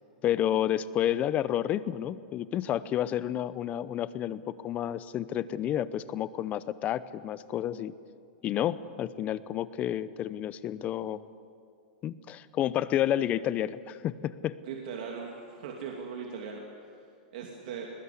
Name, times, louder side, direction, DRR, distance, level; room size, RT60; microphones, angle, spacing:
voice 1, 0.2-7.9 8.4-11.2 12.0-14.6, left 11 dB, 30° left, 17 dB, 0.8 m, -30 dB
voice 2, 14.6-16.6 16.9-17.1 17.3-17.9, right 6 dB, 65° right, 0 dB, 2.7 m, -39 dB
21.0 x 20.5 x 8.4 m, 2.4 s
hypercardioid pair, 125°, 5 cm